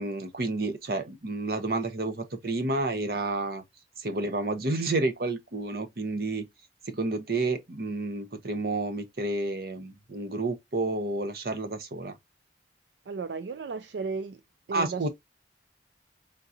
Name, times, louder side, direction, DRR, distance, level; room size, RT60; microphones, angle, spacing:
voice 1, 0.0-3.6 4.0-6.5 6.9-12.1 14.7-15.1, right 2 dB, 55° right, 0.7 m, -30 dB
voice 2, 13.1-14.4 14.7-15.1, right 4 dB, 75° right, 0.4 m, -34 dB
3.8 x 3.7 x 2.7 m
head